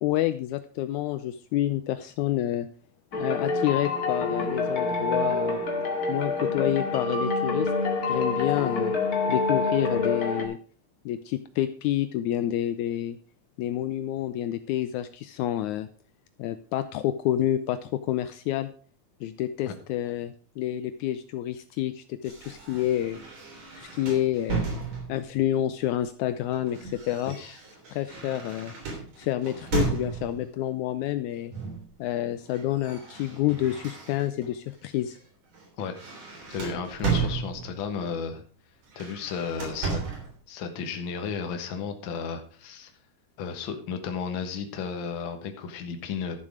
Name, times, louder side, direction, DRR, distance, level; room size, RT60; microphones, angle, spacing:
voice 1, 0.0-2.7 3.2-5.6 6.1-7.7 8.1-8.9 9.3-10.6 11.1-13.2 13.6-15.9 16.4-18.7 19.2-23.2 23.8-24.7 25.1-27.4 27.9-28.7 29.2-31.5 32.0-35.2, left 13 dB, 80° left, 11 dB, 1.9 m, -28 dB
sound 1, 3.1-10.4, left 3 dB, 35° left, 2.0 m, -27 dB
sound 2, 22.2-25.3 26.3-30.5 31.5-31.9 32.2-34.5 35.0-35.2 35.5-37.9 38.8-40.3, right 5 dB, 80° right, 5.0 m, -34 dB
voice 2, 27.3-27.6 35.8-36.0 36.5-38.4 38.9-40.0 40.5-42.9 43.4-46.4, left 6 dB, 50° left, 6 dB, 1.7 m, -33 dB
12.5 x 7.3 x 4.9 m, 0.41 s
omnidirectional pair, 3.6 m